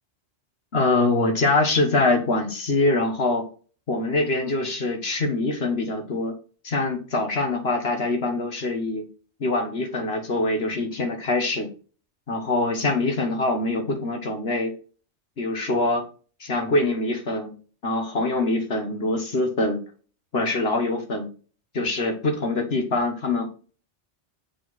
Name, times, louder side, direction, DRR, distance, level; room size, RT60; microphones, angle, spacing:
voice 1, 0.7-3.5 3.9-6.4 6.6-9.0 9.4-11.7 12.3-14.7 15.4-16.1 16.4-17.5 17.8-19.8 20.3-21.3 21.7-23.5, left 2 dB, 60° left, 5 dB, 1.7 m, -24 dB
7.2 x 4.8 x 4.1 m, 0.37 s
omnidirectional pair, 1.2 m